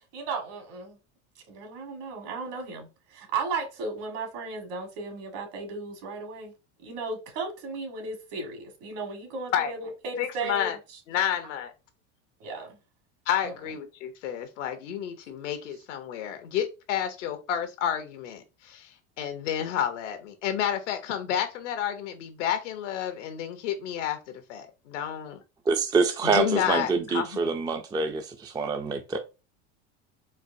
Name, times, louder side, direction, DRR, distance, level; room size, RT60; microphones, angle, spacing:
voice 1, 0.1-1.0 1.5-6.5 6.8-10.8 12.4-12.7, right 4 dB, 65° right, 1.6 m, -35 dB
voice 2, 10.2-10.8 11.1-11.7 13.3-24.2 24.5-25.3 26.2-27.5, left 10 dB, 90° left, 0.8 m, -30 dB
voice 3, 25.7-29.2, right 4 dB, 10° right, 0.3 m, -26 dB
4.4 x 2.1 x 2.6 m
supercardioid pair, 100°, 35 cm